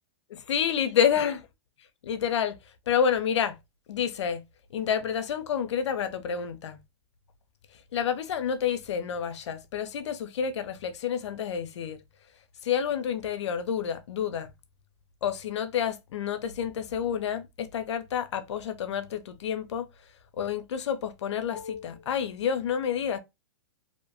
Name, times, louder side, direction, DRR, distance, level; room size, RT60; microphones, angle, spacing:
voice 1, 0.3-1.5 2.0-2.6 2.9-3.6 3.9-4.4 4.7-6.8 7.9-12.0 12.6-14.5 15.2-19.9 20.4-23.2, left 8 dB, 85° left, 0.5 m, -29 dB
2.6 x 2.1 x 2.7 m
hypercardioid pair, 145°, 14 cm